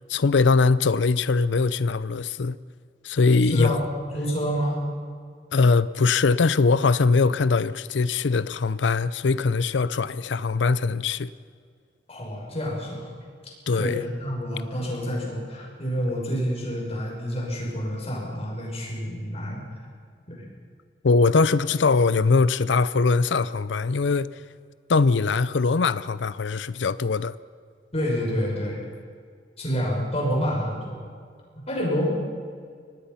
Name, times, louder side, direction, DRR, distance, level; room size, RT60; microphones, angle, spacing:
voice 1, 0.1-2.6 3.0-3.8 5.5-11.3 13.7-14.0 21.0-24.3 24.9-27.4, left 4 dB, 85° left, 0.6 m, -21 dB
voice 2, 3.4-3.9 4.1-4.8 12.1-13.1 13.7-19.6 20.3-20.4 27.9-28.8 29.6-31.0 31.7-32.1, equal, 35° left, 6.5 m, -28 dB
24.5 x 19.0 x 5.7 m
head